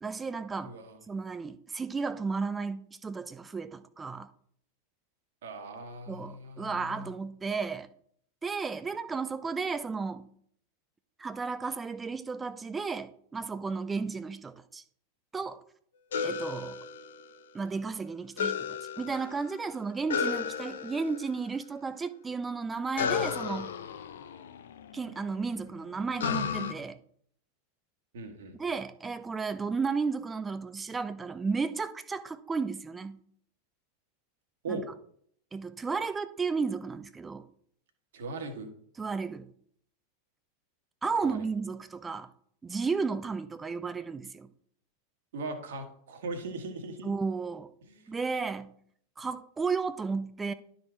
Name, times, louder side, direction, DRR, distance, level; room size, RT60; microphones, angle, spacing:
voice 1, 0.0-0.7 1.1-4.3 6.1-7.9 8.4-10.3 11.2-14.8 15.3-15.6 16.2-16.8 17.5-23.7 24.9-27.0 28.6-33.2 34.7-34.8 35.5-37.4 39.0-39.5 41.0-42.3 42.6-44.5 47.0-47.7 48.1-48.7 49.2-50.5, right 4 dB, 15° right, 0.6 m, -33 dB
voice 2, 0.6-1.0 5.4-7.1 28.1-28.7 34.6-34.9 38.1-38.7 41.2-41.5 45.3-47.1 47.8-48.1, right 3 dB, 60° right, 1.5 m, -39 dB
sound 1, 16.1-17.6 18.4-19.6 20.1-21.3 23.0-25.1 26.2-26.7, left 7 dB, 60° left, 0.7 m, -33 dB
11.5 x 4.2 x 4.5 m
figure-of-eight pair, 90°, 0 cm